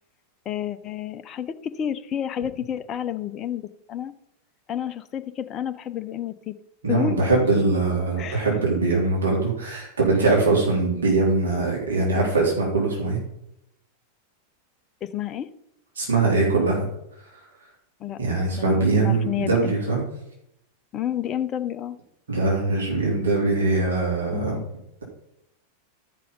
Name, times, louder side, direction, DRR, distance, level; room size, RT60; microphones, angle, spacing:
voice 1, 0.5-4.1 4.7-6.6 6.9-7.2 8.2-8.4 15.0-15.5 18.0-18.2 18.6-19.8 20.9-22.0 24.3-24.6, left 10 dB, 30° left, 10 dB, 0.7 m, -30 dB
voice 2, 6.8-13.2 16.0-16.9 18.1-20.0 22.3-24.6, right 3 dB, 65° right, -3 dB, 3.6 m, -22 dB
13.0 x 5.6 x 5.2 m, 0.81 s
figure-of-eight pair, 90°, 0 cm